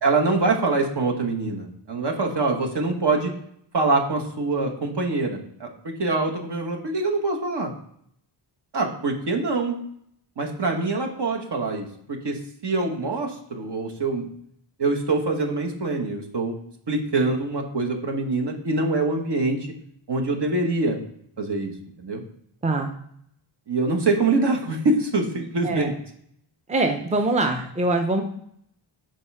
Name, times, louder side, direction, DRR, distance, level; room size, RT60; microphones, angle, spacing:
voice 1, 0.0-3.3 3.7-5.7 6.0-7.7 8.7-9.8 10.4-14.3 14.8-16.6 16.9-19.6 20.1-21.0 21.4-21.7 22.0-22.2 23.7-25.9, right 3 dB, 55° right, 1 dB, 1.3 m, -24 dB
voice 2, 26.7-28.2, right 2 dB, 15° right, 4 dB, 0.7 m, -23 dB
5.4 x 4.5 x 5.4 m, 0.68 s
wide cardioid pair, 90°, 48 cm